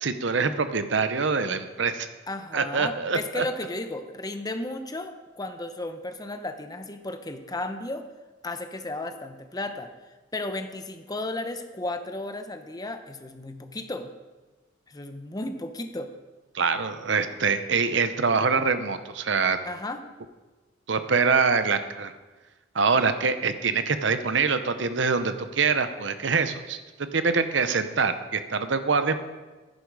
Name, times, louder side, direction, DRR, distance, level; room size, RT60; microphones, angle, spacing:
voice 1, 0.0-2.1 2.5-3.4 16.5-19.6 20.9-22.1 22.7-29.2, right 5 dB, 65° right, 10 dB, 0.8 m, -24 dB
voice 2, 2.3-8.0 8.4-14.1 14.9-16.1 19.6-20.0, left 2 dB, 20° left, 8 dB, 0.8 m, -34 dB
10.5 x 10.5 x 4.8 m, 1.2 s
head